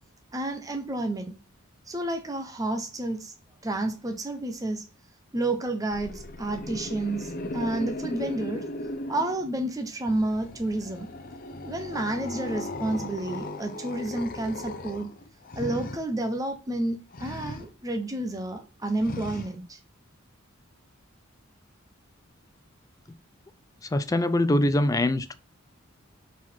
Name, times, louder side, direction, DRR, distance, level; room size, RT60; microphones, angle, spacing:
voice 1, 0.3-1.3 1.9-3.3 3.6-4.8 5.3-8.6 9.1-11.1 11.6-15.1 15.6-19.8, right 2 dB, 15° right, 0.6 m, -30 dB
sound 1, 5.9-9.7 10.0-16.0 17.1-17.7 19.0-19.5, left 1 dB, 45° left, 0.7 m, -37 dB
voice 2, 23.9-25.3, left 1 dB, 15° left, 0.3 m, -23 dB
4.6 x 4.1 x 5.6 m
head